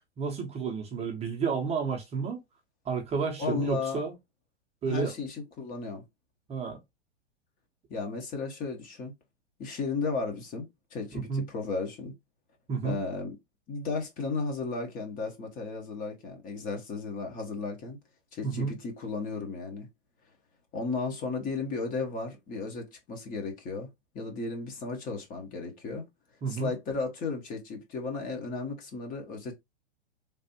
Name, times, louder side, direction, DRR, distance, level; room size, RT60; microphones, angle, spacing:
voice 1, 0.2-2.4 2.8-4.1 4.8-5.1 6.5-6.8 11.1-11.4 12.7-13.0 18.4-18.8 26.4-26.7, right 5 dB, 20° right, 0.8 m, -31 dB
voice 2, 3.4-4.0 4.9-6.0 7.9-9.1 9.6-12.1 12.8-13.4 13.7-18.0 18.3-19.9 20.7-23.9 24.1-26.0 26.5-29.5, left 4 dB, 25° left, 0.9 m, -34 dB
3.4 x 2.4 x 2.8 m
figure-of-eight pair, 105°, 34 cm